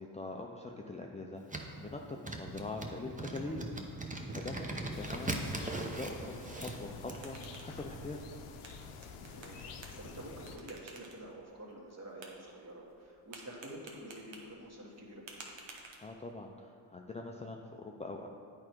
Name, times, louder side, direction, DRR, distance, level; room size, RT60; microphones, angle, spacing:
voice 1, 0.0-5.4 5.7-8.2 16.0-18.3, left 2 dB, 15° left, 1 dB, 0.5 m, -43 dB
sound 1, 1.5-7.2, right 2 dB, 15° right, 0.8 m, -40 dB
voice 2, 4.3-4.7 9.2-15.3, right 1 dB, 30° right, -2 dB, 1.7 m, -49 dB
sound 2, 4.9-10.6, left 4 dB, 90° left, 0.7 m, -48 dB
sound 3, 6.8-16.5, right 3 dB, 65° right, 1.2 m, -55 dB
8.6 x 4.8 x 4.5 m, 2.4 s
cardioid pair, 65°, 48 cm